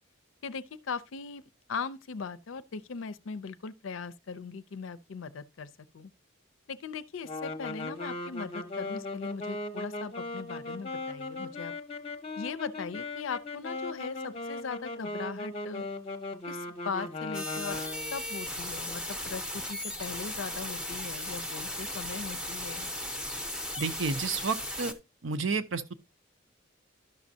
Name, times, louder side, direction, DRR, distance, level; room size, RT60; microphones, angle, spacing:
voice 1, 0.4-1.4 1.7-6.1 6.7-11.7 12.4-15.9 16.5-17.8 18.1-22.9, left 5 dB, 75° left, 0.5 m, -39 dB
sound 1, 7.2-18.2, left 2 dB, 30° left, 0.7 m, -38 dB
sound 2, 17.3-24.9, left 1 dB, 5° right, 0.7 m, -36 dB
voice 2, 23.8-25.0 25.2-25.9, right 4 dB, 70° right, 0.7 m, -31 dB
12.0 x 6.1 x 2.7 m
head